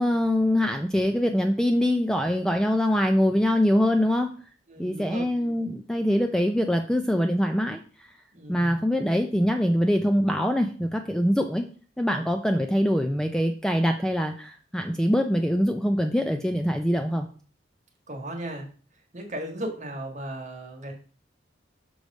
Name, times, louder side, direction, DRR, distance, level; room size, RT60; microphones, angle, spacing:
voice 1, 0.0-4.3 4.8-8.1 8.5-11.7 12.0-17.3, equal, 5° left, 5 dB, 0.3 m, -24 dB
voice 2, 4.7-5.3 8.3-8.8 18.1-18.6 19.1-20.9, right 1 dB, 40° right, 2 dB, 1.4 m, -36 dB
6.1 x 3.3 x 5.2 m, 0.41 s
head